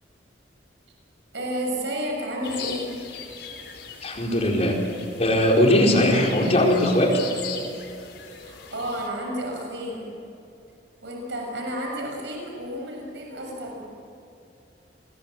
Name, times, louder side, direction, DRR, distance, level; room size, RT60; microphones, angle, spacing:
voice 1, 1.3-2.9 8.4-10.2 11.0-13.8, equal, 80° right, 0 dB, 6.9 m, -31 dB
sound 1, 2.4-9.1, left 6 dB, 75° left, 4.6 m, -39 dB
voice 2, 4.0-4.8 5.2-7.2, left 1 dB, 35° left, -1 dB, 4.7 m, -19 dB
30.0 x 22.0 x 7.8 m, 2.6 s
head